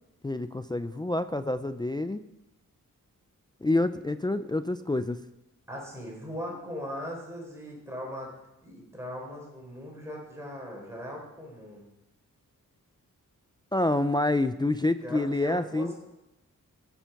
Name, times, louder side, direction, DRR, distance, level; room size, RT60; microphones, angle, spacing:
voice 1, 0.2-2.2 3.6-5.2 13.7-15.9, left 2 dB, 15° left, 10 dB, 0.3 m, -27 dB
voice 2, 5.7-8.3 8.6-11.9 15.0-15.9, equal, 10° right, -2 dB, 4.0 m, -39 dB
17.0 x 7.4 x 5.7 m, 0.93 s
wide cardioid pair, 175°, 33 cm